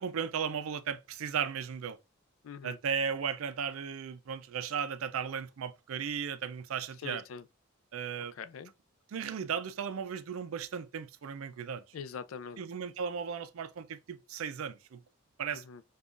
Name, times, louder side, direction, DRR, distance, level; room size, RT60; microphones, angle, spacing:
voice 1, 0.0-2.0 2.6-7.2 7.9-8.3 9.1-11.8 12.6-15.0 15.4-15.6, right 7 dB, 80° right, 0.4 m, -36 dB
voice 2, 2.4-2.8 7.0-7.4 8.3-8.7 11.9-12.6 15.5-15.8, left 6 dB, 75° left, 0.4 m, -43 dB
5.3 x 2.3 x 2.4 m
head